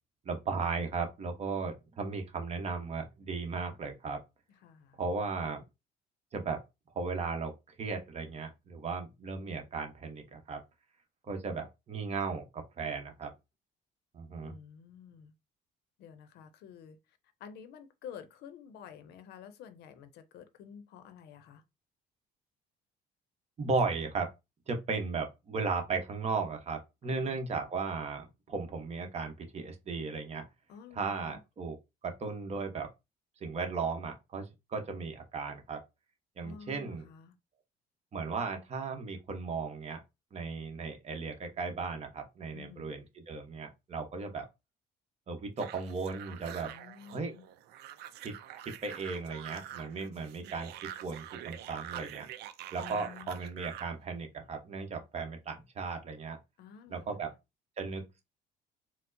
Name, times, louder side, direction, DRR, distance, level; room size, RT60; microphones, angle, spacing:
voice 1, 0.2-4.2 5.0-5.6 6.3-6.6 6.9-10.6 11.3-13.3 14.1-14.6 23.6-24.3 24.7-30.4 30.9-31.8 32.0-32.9 33.4-35.8 36.4-37.1 38.1-40.0 40.3-44.5 45.3-46.7 47.1-47.3 48.2-48.3 48.8-52.3 52.7-56.4 56.9-57.3 57.8-58.2, right 4 dB, 40° right, 0.9 m, -36 dB
voice 2, 4.6-5.0 14.4-15.3 16.0-21.6 27.0-27.4 30.7-31.4 36.4-37.4 42.5-42.9 46.6-47.5 52.8-53.3 56.6-57.2, left 7 dB, 75° left, 0.6 m, -50 dB
sound 1, 45.6-54.0, right 11 dB, 75° right, 0.4 m, -46 dB
4.3 x 2.0 x 2.6 m
cardioid pair, 110°, 17 cm